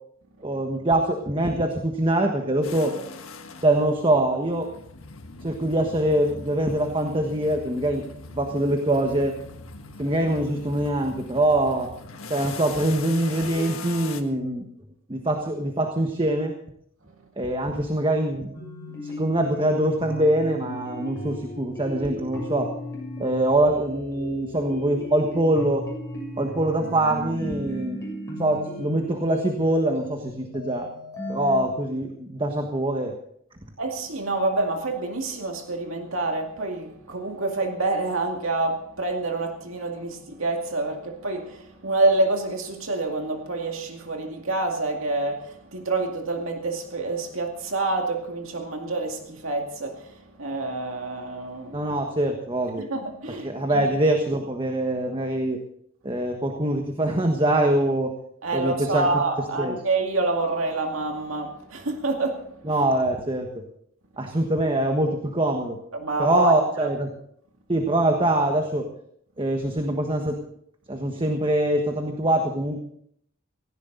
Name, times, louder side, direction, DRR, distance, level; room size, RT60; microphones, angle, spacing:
voice 1, 0.4-3.0 3.6-4.7 5.4-8.0 8.3-9.4 10.0-11.9 12.3-14.7 15.1-16.5 17.4-18.5 19.0-22.7 23.2-25.9 26.4-28.0 28.4-30.9 31.3-33.1 51.7-52.9 53.3-55.6 56.0-58.1 58.5-59.1 59.6-59.7 62.6-63.6 64.2-65.8 66.2-67.1 67.7-68.9 69.4-70.4 70.9-72.8, right 1 dB, 25° right, 1.4 m, -24 dB
sound 1, 2.6-14.2, left 4 dB, 80° left, 1.5 m, -41 dB
sound 2, 18.5-31.6, left 1 dB, 15° left, 7.6 m, -36 dB
voice 2, 33.8-51.9 52.8-53.9 58.4-62.8 65.9-66.9, right 2 dB, 75° right, 2.2 m, -27 dB
17.5 x 16.5 x 3.9 m
head